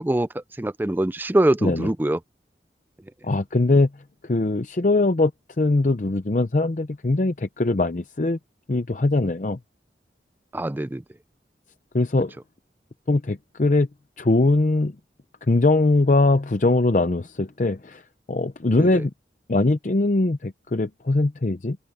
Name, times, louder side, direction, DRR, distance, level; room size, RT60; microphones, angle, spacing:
voice 1, 0.0-2.2 10.5-11.0 18.7-19.0, right 1 dB, 10° right, 0.4 m, -23 dB
voice 2, 3.2-3.9 4.2-5.3 5.6-8.4 8.7-9.6 11.9-12.3 13.1-13.9 14.2-14.9 15.5-18.0 18.3-19.1 19.5-21.8, left 2 dB, 45° left, 0.6 m, -21 dB
open air
head